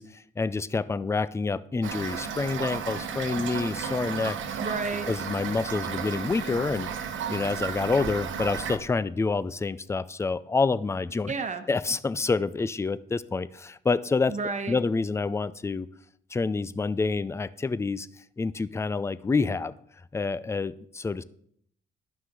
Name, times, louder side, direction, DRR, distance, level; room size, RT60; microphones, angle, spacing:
voice 1, 0.0-4.4 5.1-6.9 7.3-11.3 11.7-14.4 14.7-15.9 16.3-18.1 18.4-19.7 20.1-21.2, left 4 dB, 15° left, 17 dB, 0.4 m, -28 dB
Toilet flush / Fill (with liquid), 1.8-8.8, right 7 dB, 75° right, 1.0 m, -33 dB
voice 2, 4.6-5.1 11.3-11.6 14.3-14.8, right 4 dB, 40° right, 8 dB, 1.1 m, -31 dB
11.5 x 5.9 x 3.7 m, 0.66 s
cardioid pair, 90°, 20 cm